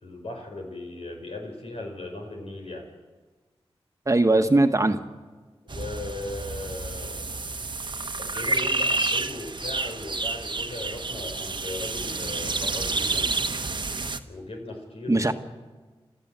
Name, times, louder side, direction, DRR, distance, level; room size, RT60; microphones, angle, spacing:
voice 1, 0.0-2.9 5.6-7.2 8.2-13.3 14.3-15.3, left 2 dB, 75° left, 2 dB, 5.0 m, -37 dB
voice 2, 4.1-5.0 15.1-15.3, right 2 dB, 30° right, 6 dB, 1.4 m, -20 dB
sound 1, 5.7-14.2, right 3 dB, 50° right, 1.1 m, -29 dB
29.0 x 13.0 x 7.7 m, 1.3 s
cardioid pair, 45°, 10 cm